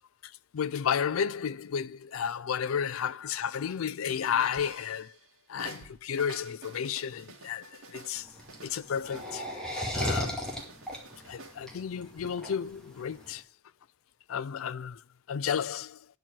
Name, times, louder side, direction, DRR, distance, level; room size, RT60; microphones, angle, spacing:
voice 1, 0.2-5.2 5.5-8.3 8.6-9.5 9.9-10.5 11.3-13.4 14.3-16.1, left 7 dB, 75° left, 0.4 m, -32 dB
sound 1, 4.1-5.3 5.6-9.6 10.0-11.6, right 3 dB, 75° right, 1.9 m, -49 dB
sound 2, 8.2-13.3, equal, 5° left, 2.2 m, -35 dB
9.8 x 4.6 x 7.3 m
head